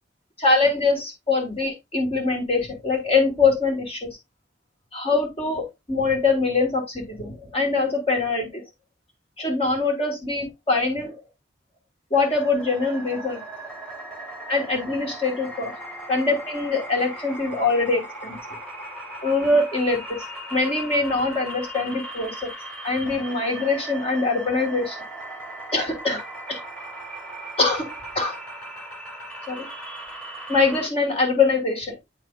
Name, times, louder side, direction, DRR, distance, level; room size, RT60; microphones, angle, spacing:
voice 1, 0.4-4.2 4.9-8.6 9.4-11.1 12.1-13.4 14.5-15.7 16.1-18.4 19.2-20.2 20.5-22.5 22.8-25.0 25.7-26.6 27.6-27.9 28.1-28.4 29.5-30.0 30.5-32.0, left 3 dB, 30° left, 2 dB, 1.5 m, -23 dB
sound 1, 12.1-30.9, right 1 dB, 5° left, 2.7 m, -38 dB
8.2 x 5.9 x 2.4 m, 0.20 s
head